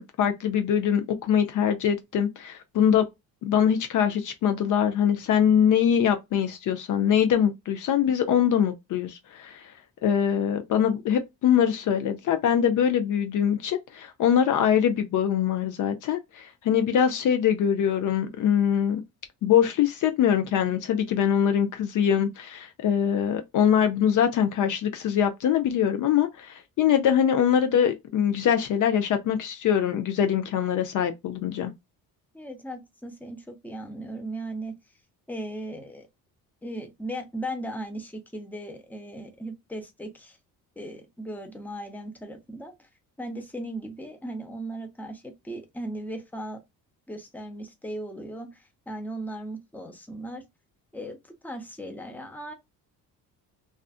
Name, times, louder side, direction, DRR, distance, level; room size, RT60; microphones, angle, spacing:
voice 1, 0.0-3.0 3.4-9.6 10.0-19.0 19.4-31.7, left 9 dB, 60° left, 0.5 m, -23 dB
voice 2, 32.3-34.7 35.3-36.1 36.6-40.4 40.8-42.9 43.2-46.6 47.1-50.4 50.9-52.5, right 1 dB, 5° left, 0.7 m, -37 dB
2.4 x 2.4 x 2.3 m
cardioid pair, 90°, 36 cm